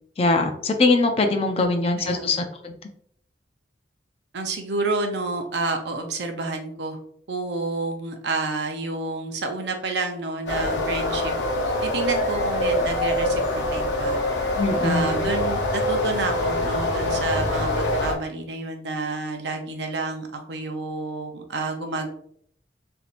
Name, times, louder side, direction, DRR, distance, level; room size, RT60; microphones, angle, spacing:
voice 1, 0.2-2.7 14.6-15.3, left 3 dB, 35° left, 5 dB, 0.4 m, -22 dB
voice 2, 1.5-2.3 4.3-7.0 7.3-11.3 11.8-14.2 14.8-22.1, right 3 dB, 70° right, 4 dB, 0.6 m, -29 dB
sound 1, 10.5-18.1, left 1 dB, 80° left, 0.7 m, -24 dB
3.3 x 2.7 x 2.4 m, 0.65 s
head